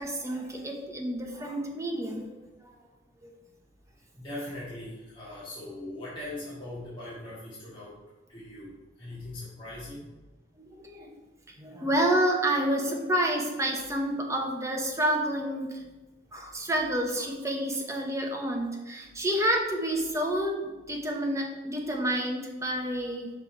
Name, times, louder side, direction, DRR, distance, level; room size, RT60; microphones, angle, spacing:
voice 1, 0.0-2.7 3.2-3.3 10.6-11.1 11.6-15.8 16.3-23.3, right 1 dB, 15° right, 0 dB, 1.0 m, -29 dB
voice 2, 4.2-7.9 8.3-8.7 9.0-10.1, left 1 dB, 25° left, -10 dB, 1.8 m, -40 dB
5.7 x 5.5 x 4.5 m, 1.1 s
head